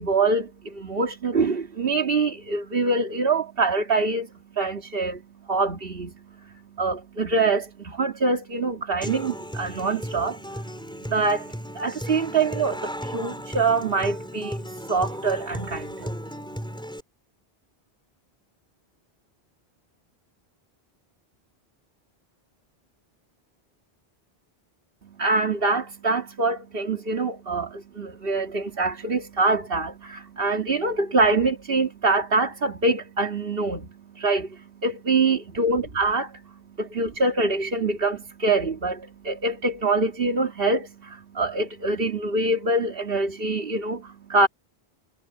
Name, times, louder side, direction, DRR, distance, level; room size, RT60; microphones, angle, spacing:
voice 1, 0.0-5.2 5.5-10.6 11.1-16.2 25.2-44.5, right 3 dB, 60° right, 2.2 m, -25 dB
Human voice / Acoustic guitar, 9.0-17.0, equal, 5° left, 4.7 m, -35 dB
omnidirectional pair, 1.1 m